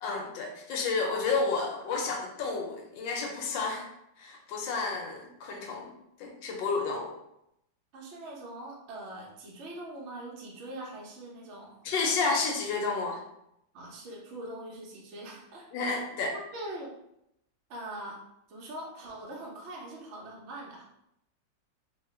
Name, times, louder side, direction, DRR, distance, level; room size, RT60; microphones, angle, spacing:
voice 1, 0.0-3.9 4.2-5.9 6.2-7.1 11.8-13.2 15.7-16.3, left 4 dB, 80° left, 1 dB, 1.3 m, -31 dB
voice 2, 7.9-11.8 13.7-15.7 16.3-16.9 17.7-18.2 18.5-20.8, right 1 dB, 55° right, -3 dB, 0.8 m, -42 dB
3.2 x 2.3 x 3.1 m, 0.80 s
omnidirectional pair, 2.0 m